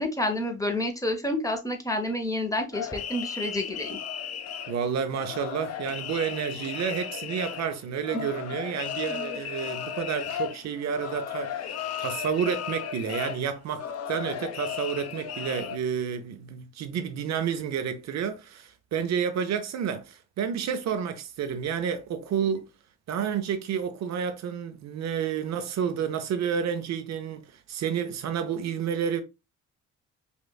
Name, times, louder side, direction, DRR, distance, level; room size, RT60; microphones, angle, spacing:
voice 1, 0.0-4.0 8.1-8.3 9.1-9.4, left 1 dB, 10° left, 0.8 m, -29 dB
sound 1, 2.7-15.8, left 8 dB, 55° left, 0.6 m, -35 dB
voice 2, 4.7-22.7 23.1-29.2, right 7 dB, 65° right, 0.6 m, -30 dB
5.1 x 2.4 x 2.3 m
cardioid pair, 90°, 30 cm